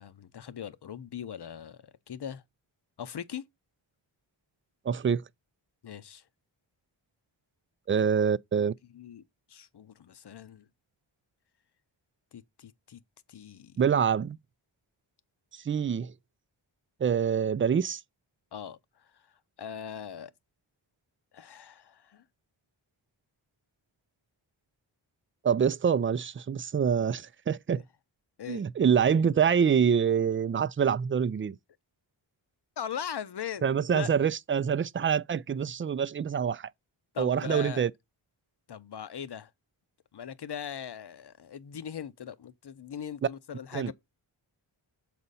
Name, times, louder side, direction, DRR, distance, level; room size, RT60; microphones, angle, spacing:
voice 1, 0.0-2.4 3.0-3.4 5.8-6.2 7.9-8.0 8.9-9.2 9.5-10.7 12.3-13.0 13.3-13.8 18.5-19.2 19.6-20.3 21.3-22.2 28.4-28.6 32.8-33.6 33.9-34.1 37.1-37.9 38.7-39.5 40.1-43.9, left 8 dB, 55° left, 0.8 m, -40 dB
voice 2, 4.8-5.2 7.9-8.7 13.8-14.4 15.5-16.1 17.0-18.0 25.4-27.8 28.5-31.6 33.6-36.7 37.2-37.9 43.7-43.9, right 7 dB, 30° right, 0.3 m, -26 dB
6.7 x 4.3 x 4.1 m
cardioid pair, 45°, 49 cm